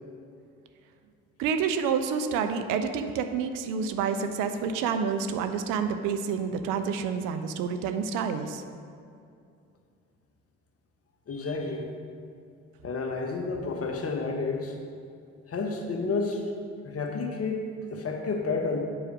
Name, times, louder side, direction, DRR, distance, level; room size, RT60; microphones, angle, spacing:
voice 1, 1.4-8.6, right 6 dB, 65° right, 8 dB, 0.6 m, -28 dB
voice 2, 11.3-11.8 12.8-14.7 15.5-16.4 16.8-18.8, left 4 dB, 40° left, 3 dB, 1.2 m, -30 dB
7.0 x 4.9 x 6.2 m, 2.4 s
hypercardioid pair, 50°, 35 cm